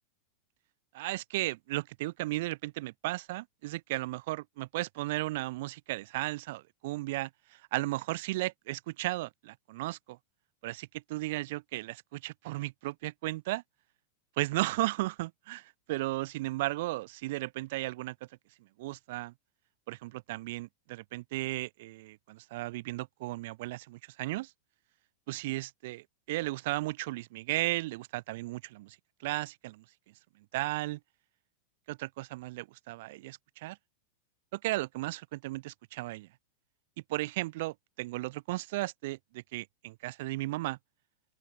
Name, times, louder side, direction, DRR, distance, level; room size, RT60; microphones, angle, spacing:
voice 1, 0.9-10.2 10.6-13.6 14.4-18.3 18.8-19.3 19.9-24.5 25.3-29.8 30.5-31.0 31.9-33.8 34.5-36.3 37.1-40.8, right 19 dB, 50° right, 1.4 m, -35 dB
open air
figure-of-eight pair, 90°, 0 cm